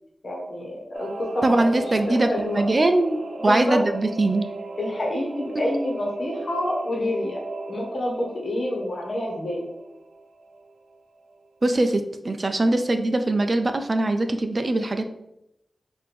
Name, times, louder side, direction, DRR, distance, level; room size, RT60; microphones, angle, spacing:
voice 1, 0.2-1.8 2.3-2.6 3.4-3.8 4.8-7.4 7.7-9.7, left 1 dB, 55° left, -1 dB, 1.2 m, -28 dB
Singing / Musical instrument, 0.9-11.0 11.3-11.4, right 3 dB, 85° right, 0.6 m, -37 dB
voice 2, 1.4-4.4 11.6-15.0, right 2 dB, 40° right, 7 dB, 0.3 m, -22 dB
3.5 x 2.6 x 4.2 m, 0.86 s
wide cardioid pair, 80°, 0 cm